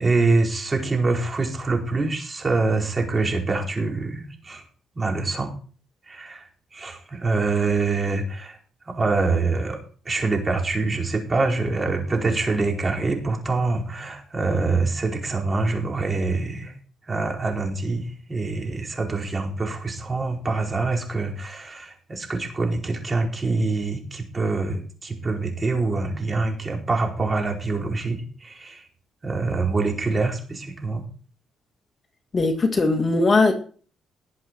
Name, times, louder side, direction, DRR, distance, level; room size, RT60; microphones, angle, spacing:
voice 1, 0.0-4.6 4.9-5.5 6.1-8.6 8.9-9.8 10.0-16.8 17.0-28.8 29.2-31.1, right 3 dB, 30° right, 1 dB, 4.6 m, -25 dB
voice 2, 32.3-33.5, left 3 dB, 35° left, 5 dB, 2.1 m, -19 dB
19.5 x 7.8 x 4.6 m, 0.42 s
cardioid pair, 90°, 0 cm